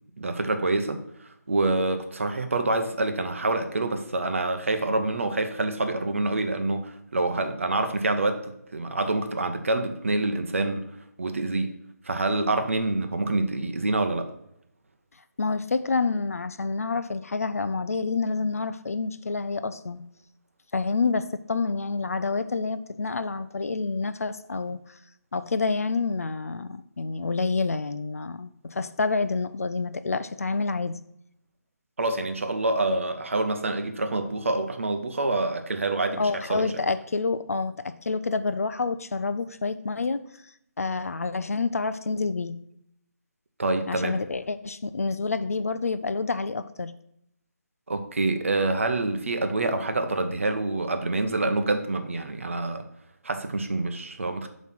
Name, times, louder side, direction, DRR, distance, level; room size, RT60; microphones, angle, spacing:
voice 1, 0.2-1.0 1.5-10.9 11.2-11.8 12.0-14.3 32.0-36.7 43.6-44.2 47.9-52.8 53.2-54.5, right 2 dB, 50° right, 7 dB, 0.7 m, -26 dB
voice 2, 15.4-20.0 20.7-24.8 25.3-31.0 36.2-40.2 40.8-42.5 43.9-46.9, left 4 dB, 60° left, 12 dB, 0.4 m, -28 dB
7.3 x 3.1 x 5.8 m, 0.76 s
hypercardioid pair, 175°, 9 cm